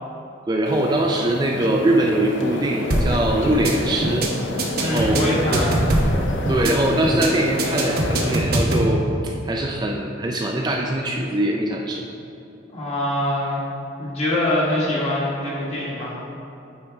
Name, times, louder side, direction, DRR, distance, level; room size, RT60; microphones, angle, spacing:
voice 1, 0.5-4.3 4.8-5.6 6.0-6.1 6.5-9.0 9.4-12.0, right 1 dB, 20° right, 0 dB, 0.3 m, -22 dB
sound 1, 0.6-8.4, left 2 dB, 75° left, 0.6 m, -30 dB
sound 2, 2.9-3.2 3.5-3.7 4.0-4.3 4.6-6.2 6.5-6.7 7.0-7.3 7.6-8.9, right 2 dB, 50° right, 0.8 m, -21 dB
voice 2, 4.8-5.9 12.7-13.6 14.0-16.1, left 1 dB, 35° left, -6 dB, 1.6 m, -24 dB
9.2 x 4.4 x 3.4 m, 2.8 s
head